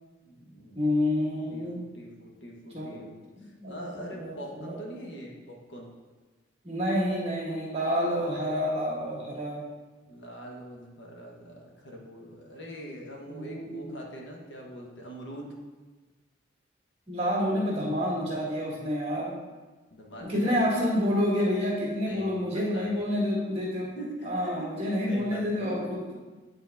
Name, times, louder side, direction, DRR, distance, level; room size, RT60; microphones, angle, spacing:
voice 1, 0.2-0.9 1.5-3.2 3.7-5.9 10.1-15.5 19.9-20.8 22.0-23.1 23.9-25.7, right 1 dB, 70° left, -1 dB, 1.2 m, -43 dB
voice 2, 0.7-1.9 2.7-3.0 3.4-4.8 6.6-9.6 13.3-14.0 17.1-19.3 20.2-23.9 24.2-26.1, left 1 dB, 30° right, -4 dB, 1.7 m, -29 dB
9.0 x 4.0 x 3.5 m, 1.3 s
head